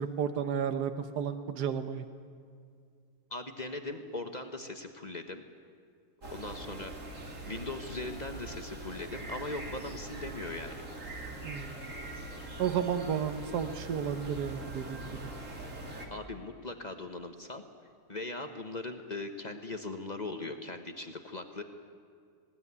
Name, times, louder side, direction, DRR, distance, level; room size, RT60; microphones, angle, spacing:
voice 1, 0.0-2.0 11.4-11.9 12.6-15.2, right 7 dB, 85° right, 9 dB, 1.5 m, -32 dB
voice 2, 3.3-5.4 6.3-6.9 7.4-10.8 16.1-17.6 18.1-21.6, left 2 dB, 30° left, 6 dB, 1.2 m, -39 dB
sound 1, 6.2-16.1, right 1 dB, 50° right, 2.9 m, -42 dB
19.5 x 18.5 x 9.7 m, 2.2 s
omnidirectional pair, 1.7 m